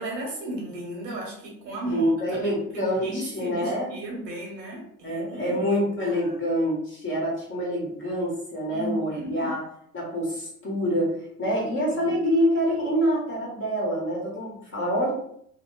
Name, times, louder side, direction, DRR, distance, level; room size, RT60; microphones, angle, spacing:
voice 1, 0.0-6.3 8.7-9.5 11.9-12.2, right 1 dB, 85° right, -1 dB, 1.1 m, -35 dB
voice 2, 1.8-3.9 5.0-9.6 9.9-11.1 11.4-15.1, equal, 25° left, -4 dB, 1.1 m, -26 dB
2.6 x 2.1 x 3.0 m, 0.68 s
hypercardioid pair, 80°, 48 cm